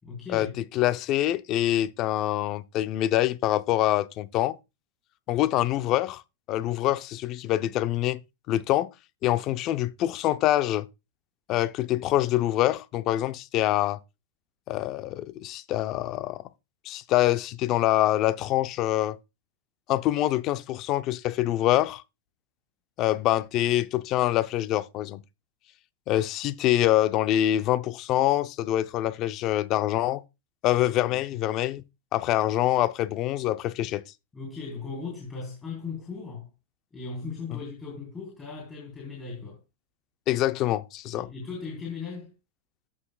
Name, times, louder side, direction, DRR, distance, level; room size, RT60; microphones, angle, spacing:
voice 1, 0.0-0.5 30.9-31.4 34.3-36.5 36.9-39.6 41.1-42.3, left 4 dB, 15° left, 4.0 m, -38 dB
voice 2, 0.7-4.6 5.3-6.2 6.5-8.2 8.5-8.9 9.2-10.9 11.5-14.0 14.7-16.4 16.9-19.2 19.9-22.0 23.0-25.2 26.1-30.2 30.6-31.8 32.1-34.0 37.5-37.6 40.3-41.3, left 14 dB, 40° left, 0.6 m, -25 dB
14.5 x 5.8 x 2.3 m
hypercardioid pair, 125°, 0 cm